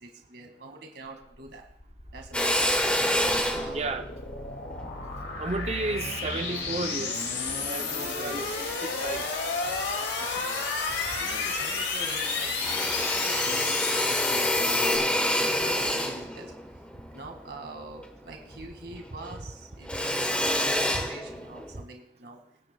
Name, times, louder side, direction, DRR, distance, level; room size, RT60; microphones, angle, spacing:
voice 1, 0.0-1.6 2.1-2.7 3.1-3.9 7.9-8.5 10.1-16.5 17.1-22.4, right 2 dB, 65° right, 2 dB, 2.0 m, -45 dB
sound 1, 1.2-15.0, left 4 dB, 75° left, 2.3 m, -32 dB
Drill, 2.3-6.9 7.4-8.6 9.1-10.0 10.4-10.5 10.7-11.7 12.0-18.7 19.0-21.8, left 1 dB, 5° left, 1.1 m, -29 dB
voice 2, 3.5-4.0 5.4-8.5 8.8-9.2 15.5-15.9 20.9-21.0, right 3 dB, 35° right, 5 dB, 0.6 m, -33 dB
24.0 x 9.6 x 2.3 m, 0.66 s
head